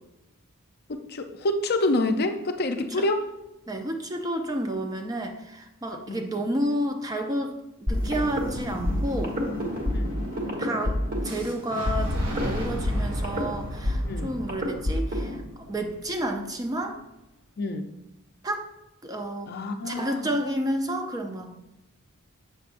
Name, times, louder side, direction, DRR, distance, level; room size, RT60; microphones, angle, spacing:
voice 1, 0.9-3.2 6.1-6.3 9.9-10.2 12.6-12.8 14.0-14.4 17.6-17.9 19.5-20.3, left 2 dB, 45° left, 6 dB, 0.5 m, -27 dB
voice 2, 3.7-7.5 7.8-9.4 10.6-11.0 11.2-17.0 18.4-18.7 19.0-19.5 19.9-21.5, right 1 dB, 15° right, 5 dB, 0.4 m, -30 dB
sound 1, 7.9-15.4, left 1 dB, 40° right, 1.4 m, -28 dB
Boom, 11.2-17.1, right 1 dB, 70° right, 0.9 m, -41 dB
7.1 x 6.8 x 2.5 m, 0.92 s
head